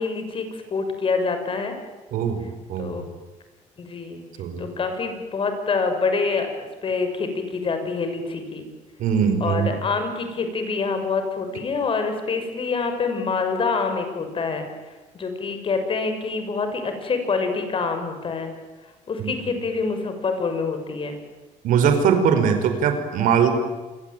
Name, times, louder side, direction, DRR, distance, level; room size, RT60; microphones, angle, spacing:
voice 1, 0.0-1.7 2.8-3.1 3.8-4.2 4.6-8.7 9.4-14.7 15.1-18.5 19.1-21.2, left 4 dB, 40° left, 7 dB, 6.4 m, -26 dB
voice 2, 2.1-2.4 2.7-2.9 4.4-4.7 9.0-9.7 19.2-19.3 21.6-23.5, right 7 dB, 80° right, 8 dB, 5.1 m, -21 dB
28.0 x 23.0 x 9.3 m, 1.2 s
cardioid pair, 115°, 13 cm